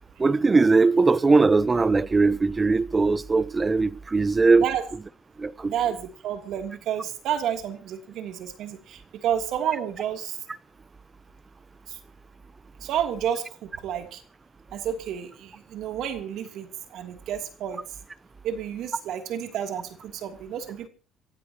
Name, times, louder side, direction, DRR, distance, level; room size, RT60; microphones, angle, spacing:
voice 1, 0.2-4.6 5.4-5.7, right 3 dB, 20° right, 0.8 m, -20 dB
voice 2, 5.7-10.4 11.9-12.0 12.8-14.2 14.7-17.8 18.4-20.9, right 9 dB, 65° right, 3.0 m, -30 dB
25.5 x 15.5 x 3.0 m
cardioid pair, 115°, 0 cm